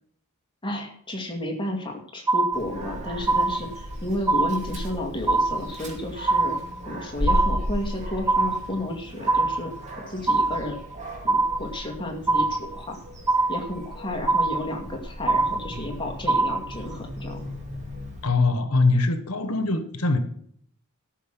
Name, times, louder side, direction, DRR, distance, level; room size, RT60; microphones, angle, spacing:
voice 1, 0.6-6.6 6.9-9.7 10.1-10.8 11.2-13.0 13.5-17.5, left 1 dB, 20° left, 1 dB, 2.1 m, -32 dB
sound 1, 2.3-2.9 3.3-3.9 4.3-4.9 5.3-5.9 6.3-6.9 7.3-7.9 8.3-8.9 9.3-9.9 10.3-10.9 11.3-11.9 12.3-12.9 13.3-13.9 14.3-14.9 15.3-15.9 16.3-16.9, right 3 dB, 15° right, 0.5 m, -23 dB
Dog, 2.5-18.2, equal, 30° right, 2.5 m, -35 dB
voice 2, 18.2-20.2, left 3 dB, 80° left, 10 dB, 1.3 m, -22 dB
13.5 x 6.5 x 6.0 m, 0.64 s
head